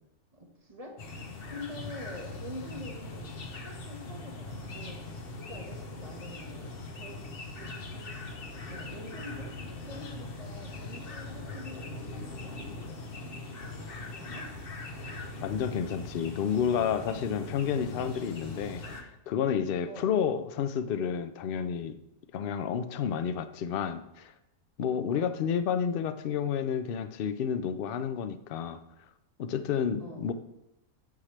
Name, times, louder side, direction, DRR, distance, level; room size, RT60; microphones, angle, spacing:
voice 1, 0.3-1.0 1.5-7.2 7.6-8.1 8.6-12.9 14.0-14.5 19.9-20.1 25.1-25.4 30.0-30.3, left 1 dB, 25° right, 0 dB, 1.3 m, -46 dB
sound 1, 1.0-19.0, left 2 dB, 45° left, 1.0 m, -41 dB
voice 2, 15.4-22.0 22.3-24.3 24.8-28.8 29.4-30.3, left 7 dB, 70° left, 11 dB, 0.5 m, -30 dB
9.3 x 6.3 x 3.3 m, 0.88 s
omnidirectional pair, 1.6 m